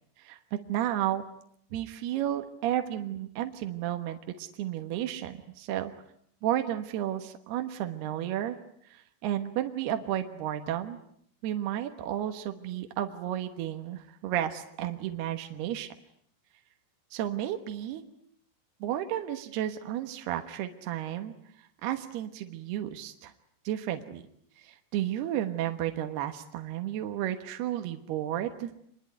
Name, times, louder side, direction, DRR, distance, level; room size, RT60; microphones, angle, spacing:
voice 1, 0.7-1.3 1.7-5.9 6.4-8.6 8.9-11.0 11.4-15.9 17.1-18.0 18.8-21.3 21.8-23.3 23.6-24.2 24.6-28.7, right 11 dB, 70° right, 6 dB, 3.1 m, -32 dB
26.0 x 23.0 x 9.1 m, 0.68 s
omnidirectional pair, 5.2 m